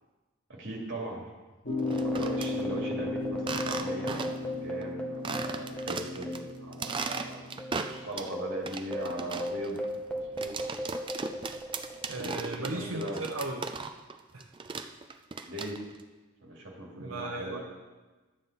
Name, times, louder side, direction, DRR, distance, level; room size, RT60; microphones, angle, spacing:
voice 1, 0.5-1.2 2.0-7.6 7.9-9.8 10.1-10.6 12.2-13.2 15.5-15.8 16.4-17.6, right 1 dB, 60° right, -1 dB, 2.2 m, -39 dB
sound 1, 1.6-8.1, left 2 dB, 50° left, 3.2 m, -36 dB
sound 2, 1.7-6.6 6.8-7.0 7.6-12.3, equal, 5° left, 1.0 m, -37 dB
sound 3, 1.8-2.5 3.4-4.5 4.8-4.9 5.2-6.4 6.7-8.3 8.7-14.2 14.4-16.0, right 4 dB, 25° right, 0.4 m, -37 dB
voice 2, 12.1-13.7 14.3-14.5 16.9-17.6, right 2 dB, 90° right, 0 dB, 0.8 m, -36 dB
11.5 x 7.3 x 4.0 m, 1.2 s
head